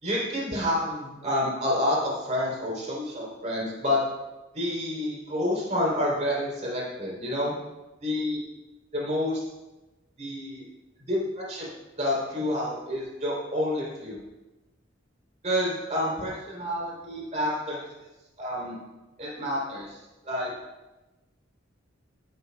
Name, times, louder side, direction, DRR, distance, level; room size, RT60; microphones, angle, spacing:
voice 1, 0.0-4.0 4.5-7.5 8.0-8.4 8.9-9.4 10.2-10.6 11.1-11.7 12.0-14.2 15.4-17.8 18.4-18.8 19.2-20.0 20.2-20.5, left 1 dB, 35° right, -4 dB, 3.6 m, -28 dB
15.0 x 10.5 x 2.4 m, 1.1 s
head